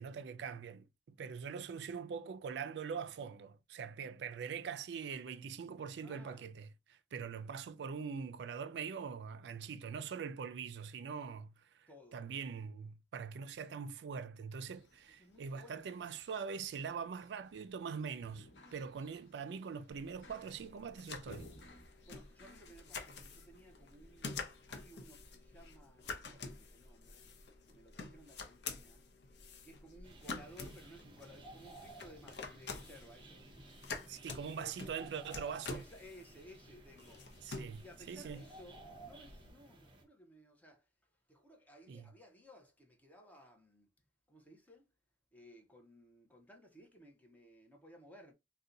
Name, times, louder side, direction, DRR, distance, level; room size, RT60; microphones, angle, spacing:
voice 1, 0.0-21.5 34.1-35.8 37.4-38.4 41.9-42.1, right 6 dB, 70° right, 0.3 m, -43 dB
voice 2, 6.0-6.5 11.9-12.2 15.2-16.0 22.0-27.3 27.7-29.1 29.6-33.5 34.5-34.8 35.7-37.3 37.8-40.9 41.3-43.9 44.3-44.9 45.3-48.3, equal, 10° left, 0.7 m, -58 dB
sound 1, 14.6-24.7, left 1 dB, 85° left, 0.9 m, -61 dB
sound 2, 19.9-39.5, left 4 dB, 70° left, 0.6 m, -48 dB
sound 3, 30.0-40.0, right 2 dB, 30° right, 0.7 m, -57 dB
2.7 x 2.2 x 3.7 m
head